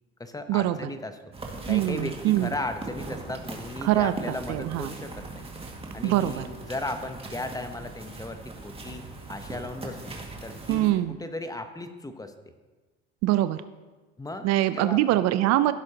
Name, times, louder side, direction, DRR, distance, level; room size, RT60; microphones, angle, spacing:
voice 1, 0.2-1.2 1.7-5.4 5.9-12.3 14.2-15.2, left 2 dB, 10° left, 8 dB, 0.9 m, -36 dB
sound 1, 1.3-10.9, right 2 dB, 20° right, 1.9 m, -40 dB
voice 2, 1.7-2.5 3.8-4.9 6.0-6.5 10.7-11.2 13.2-13.6 14.4-15.7, right 14 dB, 55° right, 13 dB, 0.5 m, -23 dB
15.5 x 7.5 x 2.9 m, 1.3 s
supercardioid pair, 85°, 32 cm